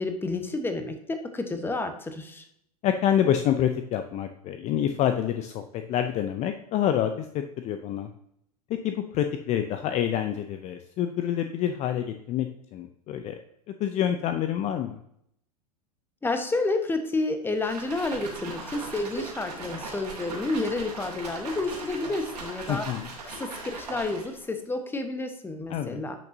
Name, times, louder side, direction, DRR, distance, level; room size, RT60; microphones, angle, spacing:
voice 1, 0.0-2.4 16.2-22.8 23.2-26.2, left 2 dB, 10° left, 7 dB, 1.1 m, -30 dB
voice 2, 2.8-8.1 8.7-13.4 13.8-15.0 22.7-23.1 25.7-26.0, left 10 dB, 35° left, 8 dB, 0.6 m, -27 dB
sound 1, 17.6-24.5, right 3 dB, 85° right, 2.6 m, -38 dB
10.0 x 6.1 x 2.7 m, 0.72 s
hypercardioid pair, 95°, 20 cm